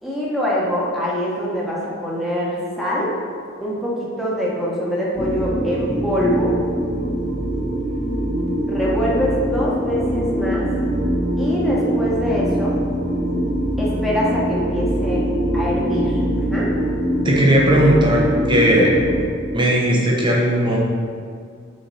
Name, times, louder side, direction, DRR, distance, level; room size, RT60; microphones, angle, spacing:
voice 1, 0.0-3.1 3.6-6.6 8.3-10.7 11.4-12.8 13.8-15.2 15.5-16.2 16.5-16.7, equal, ahead, -6 dB, 1.2 m, -24 dB
sound 1, 5.1-19.2, right 1 dB, 55° left, 0.9 m, -23 dB
voice 2, 17.2-19.0 19.5-20.8, equal, 25° right, -2 dB, 1.0 m, -17 dB
6.5 x 4.4 x 4.2 m, 2.2 s
head